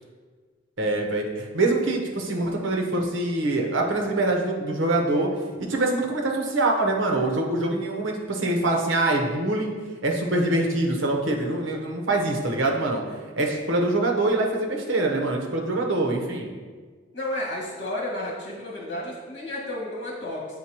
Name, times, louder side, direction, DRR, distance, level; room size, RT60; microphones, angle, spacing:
voice 1, 0.8-5.3 5.7-9.7 10.0-13.0 13.4-16.5, right 2 dB, 80° right, 1 dB, 0.9 m, -24 dB
voice 2, 17.1-20.5, left 1 dB, 60° left, -4 dB, 1.7 m, -32 dB
8.1 x 4.0 x 2.9 m, 1.5 s
head